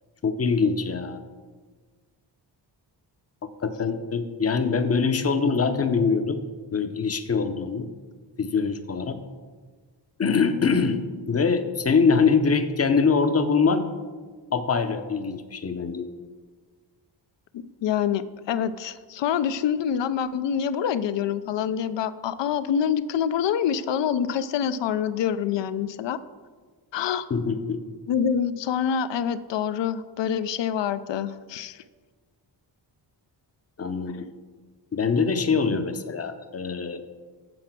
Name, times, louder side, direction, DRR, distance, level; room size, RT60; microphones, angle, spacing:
voice 1, 0.2-1.2 3.6-6.4 6.7-7.9 8.4-9.2 10.2-11.0 11.3-13.9 14.5-16.1 27.3-27.8 33.8-34.3 34.9-37.0, left 5 dB, 35° left, 9 dB, 0.6 m, -23 dB
voice 2, 17.5-26.2 26.9-27.3 28.1-31.8, left 8 dB, 70° left, 13 dB, 0.5 m, -26 dB
7.8 x 4.8 x 6.0 m, 1.5 s
cardioid pair, 95°, 44 cm